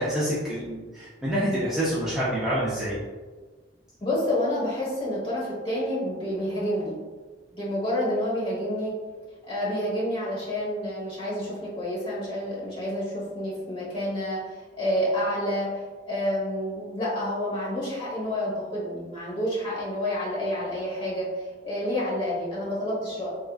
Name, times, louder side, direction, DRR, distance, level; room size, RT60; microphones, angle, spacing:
voice 1, 0.0-3.0, equal, 5° right, -10 dB, 0.5 m, -27 dB
voice 2, 4.0-7.0 7.5-8.9 9.5-23.3, left 1 dB, 30° left, -7 dB, 1.1 m, -29 dB
3.5 x 2.3 x 2.3 m, 1.4 s
head